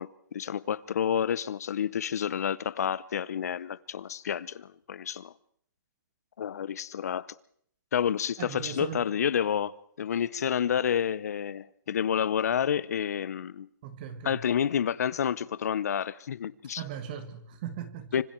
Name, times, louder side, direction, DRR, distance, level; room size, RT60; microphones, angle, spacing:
voice 1, 0.0-5.3 6.4-7.3 7.9-9.7 10.0-13.7 14.2-16.8 18.1-18.2, left 8 dB, 50° left, 0.8 m, -29 dB
voice 2, 8.4-9.0 13.8-14.4 16.8-18.2, right 8 dB, 25° right, 1.5 m, -38 dB
25.5 x 25.5 x 4.6 m
hypercardioid pair, 175°, 11 cm